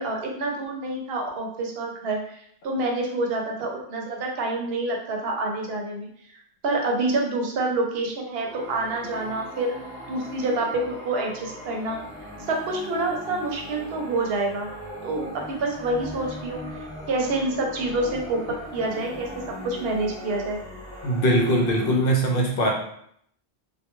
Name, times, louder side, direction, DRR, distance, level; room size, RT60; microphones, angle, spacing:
voice 1, 0.0-6.1 6.6-9.8 10.1-12.0 12.5-14.7 15.0-16.6 17.1-18.4 18.7-20.6, right 2 dB, 70° right, 1 dB, 0.8 m, -27 dB
sound 1, 8.3-21.9, left 1 dB, 5° left, 0.4 m, -39 dB
voice 2, 21.0-22.7, right 1 dB, 65° left, 0 dB, 0.7 m, -21 dB
2.1 x 2.1 x 2.9 m, 0.67 s
omnidirectional pair, 1.1 m